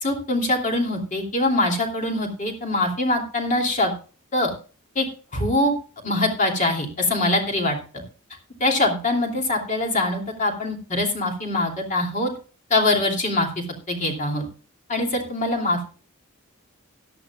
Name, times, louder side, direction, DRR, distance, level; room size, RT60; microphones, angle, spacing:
voice 1, 0.0-3.9 4.3-4.5 4.9-5.0 5.3-5.7 6.0-8.0 8.6-12.3 12.7-14.4 14.9-15.9, left 2 dB, 35° left, 1 dB, 2.9 m, -23 dB
16.5 x 11.5 x 2.4 m, 0.37 s
head